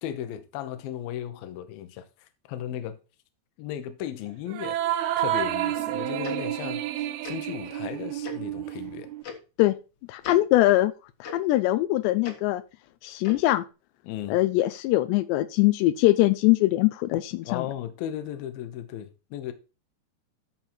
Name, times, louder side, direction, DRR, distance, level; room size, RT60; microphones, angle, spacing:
voice 1, 0.0-3.0 3.6-4.8 5.2-9.1 14.0-14.4 17.4-19.5, left 11 dB, 70° left, 2.6 m, -36 dB
sound 1, 4.5-9.2, right 13 dB, 75° right, 2.5 m, -30 dB
Tick-tock, 6.2-6.4 7.2-7.4 8.2-8.4 9.2-9.4 10.2-10.4 11.2-11.3 12.2-12.4 13.2-13.4, left 5 dB, 50° left, 1.8 m, -39 dB
voice 2, 10.1-10.9 11.2-12.6 13.0-13.6 14.3-17.6, left 17 dB, 85° left, 2.8 m, -22 dB
13.5 x 4.6 x 4.4 m
omnidirectional pair, 4.9 m